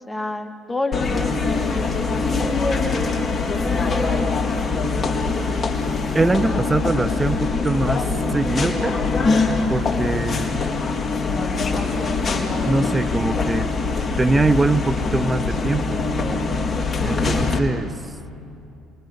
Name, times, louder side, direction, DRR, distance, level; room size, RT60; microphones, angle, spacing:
voice 1, 0.0-4.3 6.4-6.6 9.9-10.1 16.8-17.3, left 3 dB, 15° left, 6 dB, 1.9 m, -30 dB
sound 1, 0.9-17.6, left 3 dB, 35° left, 4.0 m, -23 dB
voice 2, 6.1-8.9 9.7-10.6 12.6-13.7 14.2-16.0 17.0-17.9, right 2 dB, 20° right, 13 dB, 1.2 m, -22 dB
28.0 x 23.0 x 6.8 m, 2.6 s
hypercardioid pair, 55°, 0 cm